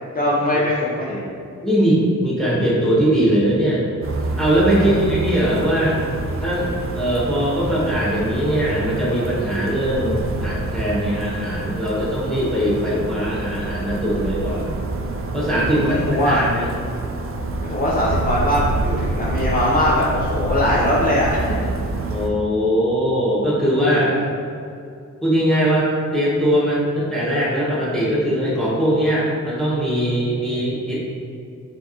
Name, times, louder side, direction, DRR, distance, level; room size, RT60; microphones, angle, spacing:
voice 1, 0.1-1.2 4.7-5.0 15.7-16.4 17.6-21.5 23.8-24.2, left 1 dB, 30° left, -7 dB, 0.6 m, -21 dB
voice 2, 1.6-3.8 4.4-6.0 6.4-6.7 6.9-14.8 15.3-16.7 22.1-24.1 25.2-31.0, equal, ahead, -8 dB, 1.5 m, -20 dB
sound 1, 4.0-22.3, right 2 dB, 45° right, 0.4 m, -27 dB
4.5 x 3.2 x 2.9 m, 2.4 s
wide cardioid pair, 95°, 31 cm